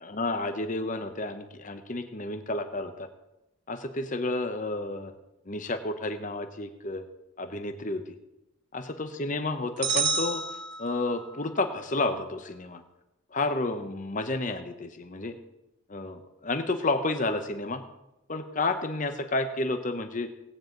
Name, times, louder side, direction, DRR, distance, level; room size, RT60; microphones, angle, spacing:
voice 1, 0.0-3.1 3.7-5.1 5.5-7.0 7.4-8.0 8.7-10.4 10.8-12.8 13.3-15.3 15.9-17.8 18.3-20.3, left 2 dB, 40° left, 7 dB, 0.9 m, -31 dB
sound 1, 9.8-11.4, right 5 dB, 55° right, 0.7 m, -29 dB
17.0 x 9.1 x 3.9 m, 0.92 s
head